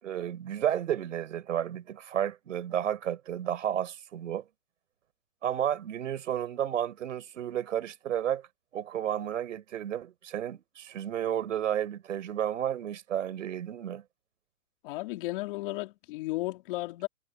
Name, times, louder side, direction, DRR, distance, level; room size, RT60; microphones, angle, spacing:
voice 1, 0.0-4.4 5.4-8.5 8.7-14.0, right 10 dB, 75° right, 5.3 m, -32 dB
voice 2, 14.8-17.1, left 19 dB, 45° left, 2.9 m, -34 dB
hypercardioid pair, 155°, 38 cm